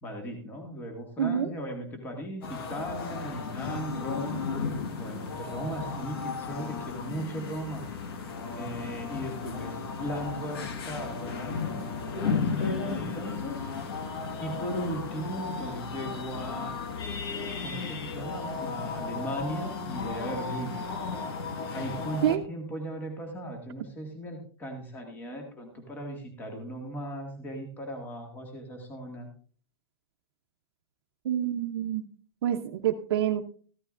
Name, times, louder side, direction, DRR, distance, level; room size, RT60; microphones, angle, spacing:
voice 1, 0.0-7.9 8.5-11.8 12.2-13.7 14.4-16.8 17.6-20.8 21.7-29.3, right 1 dB, 15° left, 3 dB, 1.8 m, -37 dB
voice 2, 1.2-1.5 22.2-22.4 31.2-32.1 32.4-33.4, right 10 dB, 70° right, 0 dB, 0.9 m, -27 dB
sound 1, 2.4-22.4, left 5 dB, 70° left, 1.7 m, -34 dB
14.5 x 13.0 x 2.5 m, 0.43 s
supercardioid pair, 165°, 13 cm